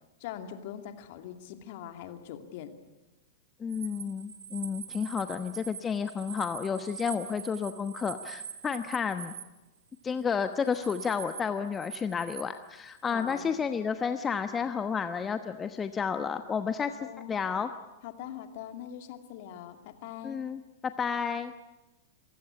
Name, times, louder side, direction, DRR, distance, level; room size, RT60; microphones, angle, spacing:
voice 1, 0.2-2.8 13.1-13.5 17.0-17.4 18.0-20.4, left 10 dB, 50° left, 8 dB, 2.4 m, -42 dB
voice 2, 3.6-9.3 10.0-16.9 17.3-17.7 20.2-21.5, left 6 dB, 20° left, 9 dB, 1.0 m, -31 dB
sound 1, 3.7-9.5 10.2-11.4 11.7-13.4, right 8 dB, 70° right, 2.3 m, -44 dB
26.5 x 16.5 x 9.9 m, 1.1 s
figure-of-eight pair, 100°, 0 cm